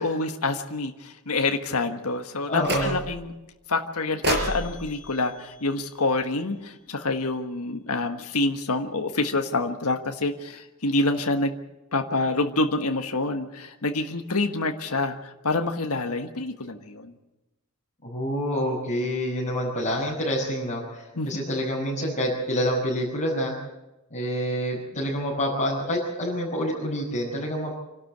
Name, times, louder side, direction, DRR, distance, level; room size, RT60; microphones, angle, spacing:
voice 1, 0.0-3.3 3.7-11.6 11.9-17.1 21.2-21.5, left 2 dB, 80° left, 5 dB, 1.5 m, -27 dB
voice 2, 2.5-3.0 18.0-23.5 24.1-27.7, equal, 35° left, -6 dB, 5.9 m, -27 dB
sound 1, 2.6-3.3 4.2-6.5, right 1 dB, 50° right, 5.5 m, -32 dB
27.0 x 12.5 x 8.0 m, 0.97 s
head